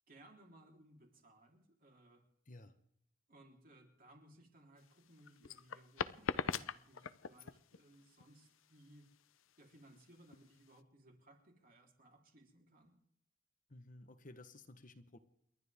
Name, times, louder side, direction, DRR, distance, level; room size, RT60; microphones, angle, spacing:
voice 1, 0.1-2.3 3.3-9.1 9.6-13.0, right 1 dB, 45° right, 1 dB, 3.7 m, -63 dB
sound 1, 4.8-10.8, left 6 dB, 85° left, 0.6 m, -42 dB
voice 2, 13.7-15.2, left 2 dB, 40° left, 9 dB, 1.2 m, -55 dB
29.0 x 12.0 x 3.6 m, 0.72 s
head